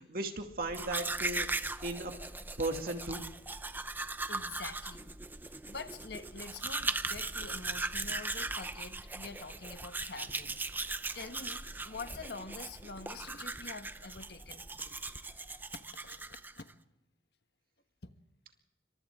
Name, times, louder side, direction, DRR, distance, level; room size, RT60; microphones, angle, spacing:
voice 1, 0.0-1.5 1.8-2.2 2.6-3.3, right 2 dB, 55° right, 4 dB, 2.4 m, -36 dB
Domestic sounds home sounds, 0.6-16.7, right 3 dB, 10° right, 0.6 m, -39 dB
voice 2, 4.3-5.1 5.4-14.6 15.7-16.7 18.0-18.1, left 4 dB, 60° left, 8 dB, 1.4 m, -46 dB
28.5 x 25.0 x 3.7 m, 0.99 s
head